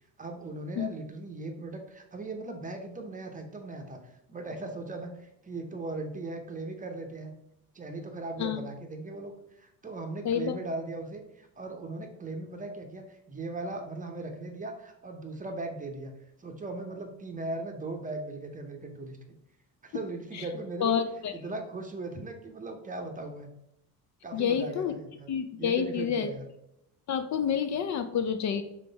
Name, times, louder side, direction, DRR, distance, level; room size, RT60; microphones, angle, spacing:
voice 1, 0.2-7.3 7.7-16.1 16.4-19.2 19.8-21.0 21.3-23.5 24.2-25.3 25.6-26.4, right 2 dB, 20° right, 4 dB, 0.7 m, -38 dB
voice 2, 10.2-10.6 20.3-20.4 20.8-21.3 24.3-24.9 25.3-26.3 27.1-28.6, left 7 dB, 50° left, 8 dB, 0.4 m, -28 dB
3.7 x 3.4 x 3.9 m, 0.81 s
cardioid pair, 115°, 37 cm